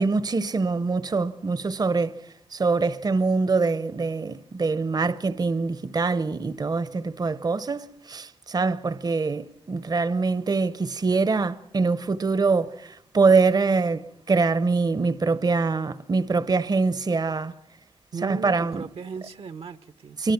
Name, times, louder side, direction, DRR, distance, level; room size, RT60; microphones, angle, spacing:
voice 1, 0.0-17.6 18.2-18.8 20.2-20.3, right 4 dB, 40° right, 0.8 m, -24 dB
voice 2, 18.1-20.2, right 5 dB, 65° right, 0.9 m, -36 dB
26.0 x 24.0 x 5.9 m
cardioid pair, 55°, 11 cm